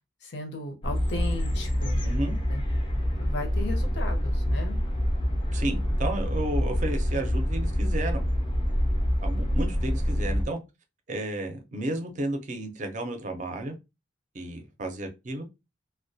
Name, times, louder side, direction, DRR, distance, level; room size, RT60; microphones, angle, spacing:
voice 1, 0.2-2.0 2.5-2.6 3.2-4.8, left 2 dB, 65° left, 0.6 m, -36 dB
sound 1, 0.8-10.5, equal, 25° left, 0.4 m, -26 dB
voice 2, 2.0-2.4 5.5-8.2 9.2-10.6 11.1-13.7 14.3-15.4, right 1 dB, 40° right, 0.5 m, -32 dB
2.2 x 2.1 x 2.6 m
head